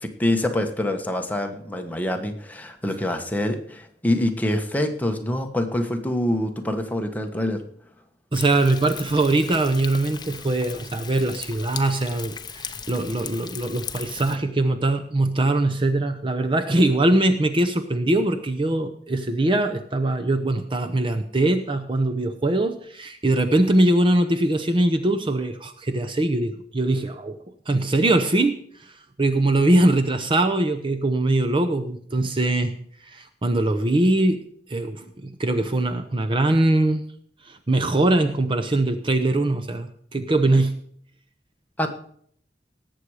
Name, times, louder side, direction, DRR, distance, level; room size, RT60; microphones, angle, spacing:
voice 1, 0.0-7.6 41.8-41.9, left 1 dB, 10° left, 4 dB, 1.2 m, -25 dB
Thunder, 8.3-14.4, left 6 dB, 25° left, 0.7 m, -38 dB
voice 2, 8.3-27.4 27.7-32.7 33.0-34.4 34.7-37.0 37.4-40.7, right 2 dB, 30° right, 7 dB, 0.7 m, -22 dB
18.5 x 7.7 x 4.9 m, 0.63 s
head